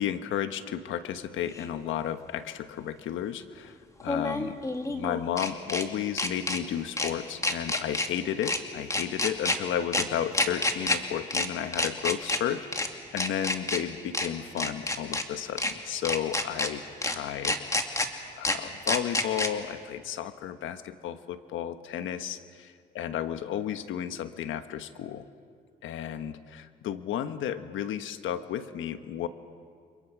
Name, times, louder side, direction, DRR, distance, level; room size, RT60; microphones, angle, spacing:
voice 1, 0.0-4.6 4.9-17.7 18.4-25.3 25.8-29.3, left 10 dB, 80° left, 10 dB, 1.3 m, -33 dB
sound 1, 1.5-1.6 4.0-5.8 6.2-6.6 7.0-7.1 7.4-8.1 8.4-8.6 8.9-9.6 9.9-10.0 10.3-11.0 11.3-11.5 11.7-12.4 12.7-12.9 13.2-13.8 14.1-14.3 14.6-15.2 15.6-15.7 16.0-16.7 17.0-17.1 17.4-18.1 18.4-18.6 18.9-19.5, left 2 dB, 15° left, 2.4 m, -28 dB
30.0 x 26.5 x 6.1 m, 2.2 s
cardioid pair, 90°, 20 cm